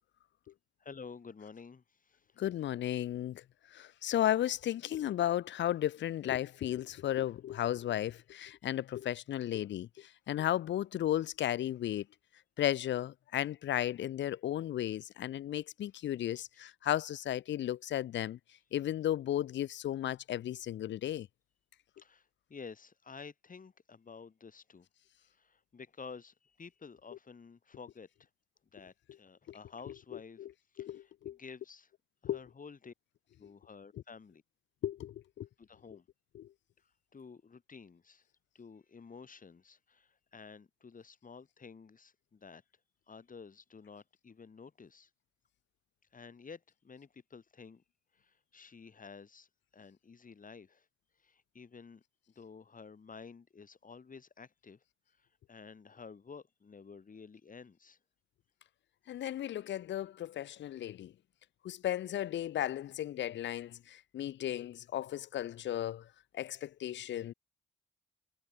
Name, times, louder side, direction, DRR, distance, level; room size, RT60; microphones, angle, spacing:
voice 1, 0.8-2.4 16.3-16.4 22.0-24.9 25.2-28.3 28.7-30.5 30.7-31.9 32.2-32.9 33.4-34.4 35.6-36.1 36.8-38.3 38.5-42.6 43.1-45.1 46.1-47.8 48.1-49.5 49.7-50.9 51.2-52.0 52.4-54.8 55.1-58.0, left 5 dB, 40° left, 7.7 m, -52 dB
voice 2, 2.4-3.4 3.7-12.0 12.6-18.4 18.7-21.3 30.4-30.5 30.8-31.4 32.2-32.4 34.8-35.5 36.4-36.5 59.1-61.1 61.6-66.0 66.3-67.3, left 12 dB, 65° left, 1.1 m, -34 dB
hypercardioid pair, 50°, 20 cm